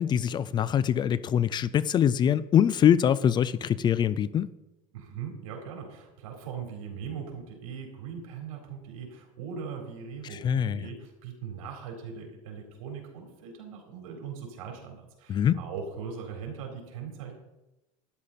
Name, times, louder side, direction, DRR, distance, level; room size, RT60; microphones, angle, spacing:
voice 1, 0.0-4.5 10.3-10.9 15.3-15.6, left 9 dB, 25° left, 0.4 m, -24 dB
voice 2, 4.9-17.3, right 6 dB, 90° right, 3.8 m, -40 dB
12.5 x 10.5 x 4.2 m
supercardioid pair, 135°, 18 cm